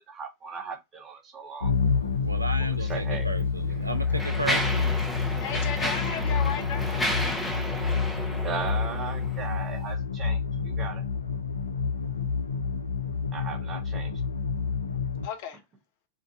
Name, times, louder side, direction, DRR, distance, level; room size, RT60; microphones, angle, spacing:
voice 1, 0.0-1.7 2.6-3.3 8.4-11.0 13.3-14.1, right 5 dB, 25° right, 0.9 m, -37 dB
sound 1, 1.6-15.3, left 5 dB, 75° left, 0.3 m, -28 dB
voice 2, 2.2-4.9, right 2 dB, 85° right, 0.4 m, -34 dB
Mechanisms, 2.8-3.0 3.7-9.4, equal, 5° left, 0.8 m, -32 dB
voice 3, 5.4-7.1 15.2-15.6, left 8 dB, 50° left, 0.8 m, -34 dB
3.6 x 2.4 x 2.3 m
figure-of-eight pair, 90°, 0 cm